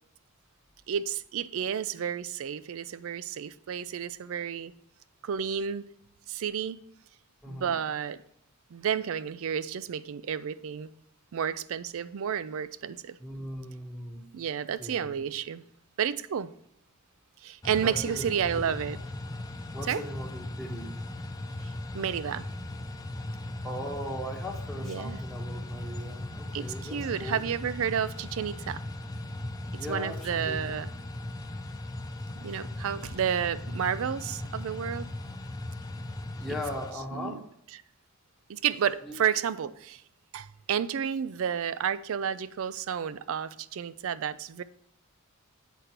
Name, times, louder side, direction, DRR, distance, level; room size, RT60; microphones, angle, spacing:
voice 1, 0.9-4.7 5.2-5.8 6.3-6.8 7.5-8.2 8.7-10.9 11.3-13.2 14.3-15.6 16.0-16.5 17.4-19.0 19.9-20.0 21.6-22.5 24.8-25.2 26.5-28.8 29.7-30.9 32.4-35.1 36.5-36.6 37.1-37.4 38.5-40.0 40.3-44.6, right 8 dB, 65° right, 0.4 m, -31 dB
voice 2, 7.4-7.7 13.2-14.2 14.8-15.2 17.8-18.2 18.6-18.7 19.7-20.9 23.6-27.4 29.7-30.8 36.4-37.4 39.1-39.2, equal, ahead, 1.0 m, -38 dB
sound 1, 17.6-36.9, left 1 dB, 15° left, 0.5 m, -38 dB
8.2 x 5.1 x 4.4 m
head